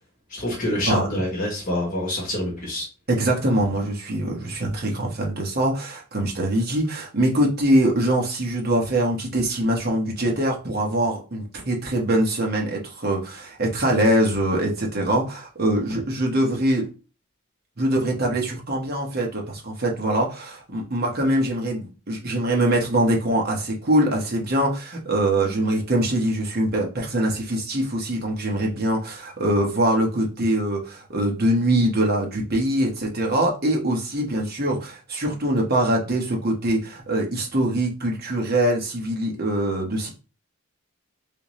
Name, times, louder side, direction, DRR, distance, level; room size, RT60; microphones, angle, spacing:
voice 1, 0.3-2.9, left 1 dB, 40° left, -3 dB, 1.2 m, -26 dB
voice 2, 0.9-1.2 3.1-16.9 17.8-40.1, right 1 dB, 45° right, 0 dB, 1.1 m, -23 dB
3.5 x 2.8 x 3.0 m, 0.33 s
head